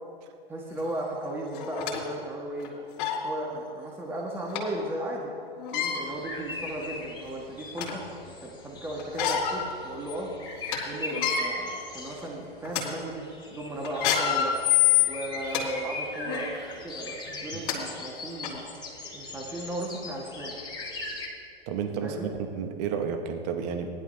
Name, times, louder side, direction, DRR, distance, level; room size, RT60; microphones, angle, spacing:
voice 1, 0.5-2.7 3.2-5.3 5.7-10.3 10.8-14.6 15.0-16.5 16.8-18.6 19.1-20.6 22.0-22.3, right 1 dB, 5° right, -2 dB, 1.5 m, -35 dB
sound 1, 0.8-0.9 1.5-2.0 2.6-2.7 3.0-3.2 4.5-4.6 5.6-6.0 6.8-6.9 7.3-8.0 9.0-9.6 10.0-10.1 10.5-10.8 11.1-11.4 12.0-12.2 12.6-12.8 13.8-15.6 16.2-16.4 17.3-17.4 17.7-17.8 18.4-18.5, left 10 dB, 50° left, 3.5 m, -26 dB
sound 2, 6.0-21.3, left 2 dB, 15° left, 2.5 m, -40 dB
voice 2, 21.7-23.9, right 7 dB, 40° right, 5 dB, 1.2 m, -31 dB
19.5 x 11.0 x 2.8 m, 2.4 s
figure-of-eight pair, 105°, 30 cm